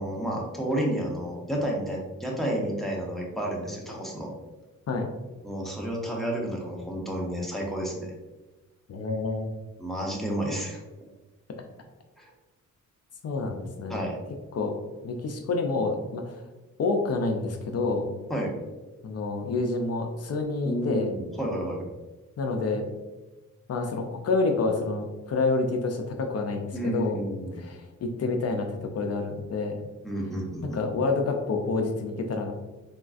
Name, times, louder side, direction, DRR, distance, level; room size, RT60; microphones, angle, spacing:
voice 1, 0.0-4.3 5.4-8.1 9.8-10.8 12.2-12.3 13.9-14.2 18.3-18.5 20.6-21.8 26.7-27.6 30.0-30.8, right 1 dB, ahead, -2 dB, 0.7 m, -31 dB
voice 2, 8.9-9.5 13.2-14.1 14.5-14.8 15.0-16.4 16.8-18.1 19.0-21.1 22.4-22.9 23.7-27.2 27.5-29.8 30.6-32.5, left 3 dB, 55° left, 4 dB, 0.4 m, -28 dB
3.6 x 2.4 x 2.4 m, 1.1 s
cardioid pair, 105°, 31 cm